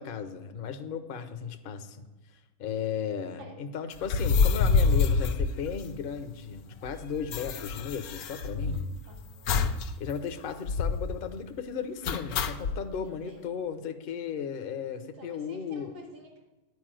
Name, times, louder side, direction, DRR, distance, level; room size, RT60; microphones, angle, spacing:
voice 1, 0.0-2.0 2.6-8.8 10.0-16.0, left 7 dB, 55° left, 7 dB, 0.6 m, -35 dB
sound 1, 4.0-6.3 6.6-6.7 6.9-9.0 9.5-9.9 10.2-10.3 10.6-11.1 12.0-12.8, left 5 dB, 70° left, 1.0 m, -26 dB
voice 2, 9.1-9.6 13.0-13.5 15.2-16.4, equal, 85° right, 0 dB, 2.4 m, -50 dB
10.5 x 4.8 x 7.5 m, 1.1 s
omnidirectional pair, 1.7 m